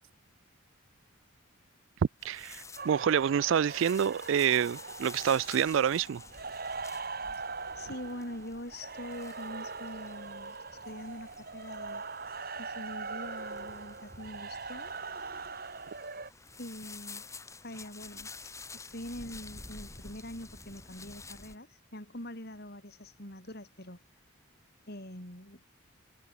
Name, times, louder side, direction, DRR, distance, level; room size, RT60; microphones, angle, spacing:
sound 1, 2.2-21.6, left 4 dB, 15° left, 4.0 m, -50 dB
voice 1, 2.2-6.2, right 8 dB, 65° right, 0.3 m, -27 dB
sound 2, 2.8-16.3, right 4 dB, 45° right, 4.1 m, -41 dB
voice 2, 7.8-12.0 12.6-14.9 16.6-17.2 17.6-18.3 18.7-24.0 24.9-25.6, left 1 dB, 50° left, 5.9 m, -44 dB
head